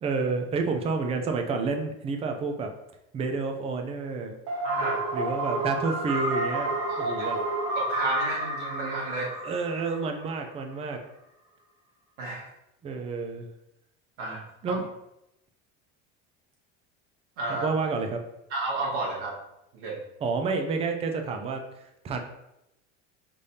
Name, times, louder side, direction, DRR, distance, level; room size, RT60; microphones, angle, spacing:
voice 1, 0.0-2.7 3.1-4.4 5.1-7.4 9.4-11.0 12.8-13.5 14.6-14.9 17.5-18.2 20.2-21.6 22.0-22.2, right 4 dB, 20° right, 4 dB, 0.4 m, -29 dB
sound 1, 4.5-10.3, right 1 dB, 50° right, 1.2 m, -30 dB
voice 2, 4.6-5.1 6.9-7.3 7.7-9.4 12.2-12.5 14.2-14.8 17.4-17.7 18.5-19.3 19.7-20.0, right 2 dB, 80° right, -3 dB, 1.6 m, -32 dB
5.3 x 3.4 x 2.8 m, 0.85 s
cardioid pair, 145°, 31 cm